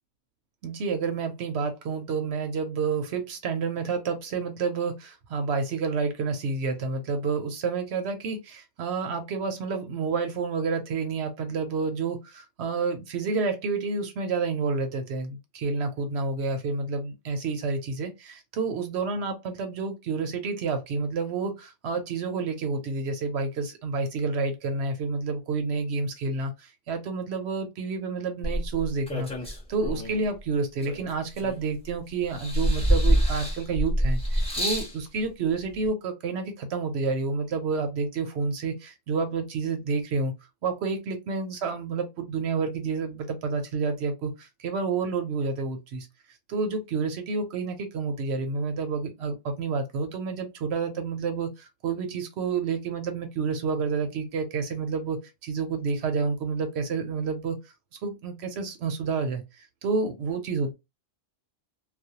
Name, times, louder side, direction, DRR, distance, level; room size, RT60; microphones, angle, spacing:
voice 1, 0.6-40.3 40.6-46.1 46.5-57.7 58.0-60.7, right 4 dB, 65° right, 0.7 m, -29 dB
sound 1, 28.4-30.2 30.8-31.9 32.3-34.9 35.8-35.9, equal, 5° left, 0.6 m, -26 dB
2.4 x 2.1 x 2.7 m
omnidirectional pair, 1.3 m